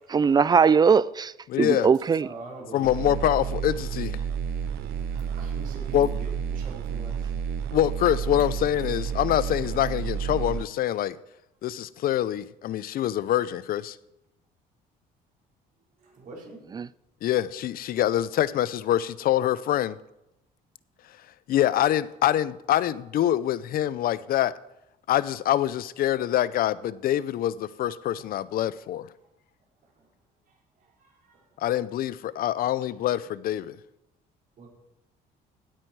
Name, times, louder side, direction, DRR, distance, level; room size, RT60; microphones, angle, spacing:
voice 1, 0.1-1.3 1.6-2.3 16.7-16.9, right 6 dB, 25° right, 0.4 m, -20 dB
voice 2, 1.5-1.9 2.7-4.2 5.9-6.1 7.7-11.1 11.6-14.0 17.2-20.0 21.5-24.5 25.1-29.1 31.6-33.8, left 12 dB, 60° left, 0.6 m, -25 dB
voice 3, 2.2-3.3 4.8-7.3 16.0-16.6 28.2-28.3 31.0-31.4 34.6-34.7, right 3 dB, 55° right, 5.2 m, -44 dB
sound 1, 2.8-10.6, right 7 dB, 80° right, 0.7 m, -31 dB
17.0 x 9.0 x 4.7 m
cardioid pair, 110°, 17 cm